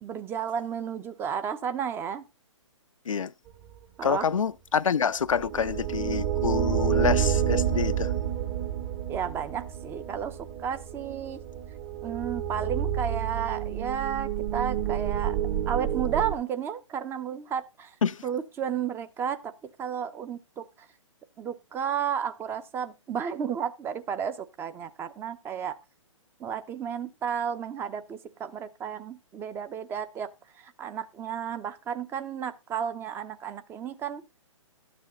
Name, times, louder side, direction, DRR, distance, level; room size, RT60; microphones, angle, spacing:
voice 1, 0.0-2.2 4.0-4.3 9.1-11.4 12.0-15.4 15.7-17.9 18.2-19.5 19.8-20.6 21.4-25.8 26.4-30.3 30.5-34.2, right 8 dB, 15° right, 0.5 m, -32 dB
voice 2, 4.0-8.1 18.0-18.2, left 7 dB, 80° left, 0.5 m, -27 dB
sound 1, 5.2-16.3, right 10 dB, 30° right, 1.0 m, -29 dB
12.0 x 6.9 x 3.9 m
figure-of-eight pair, 130°, 16 cm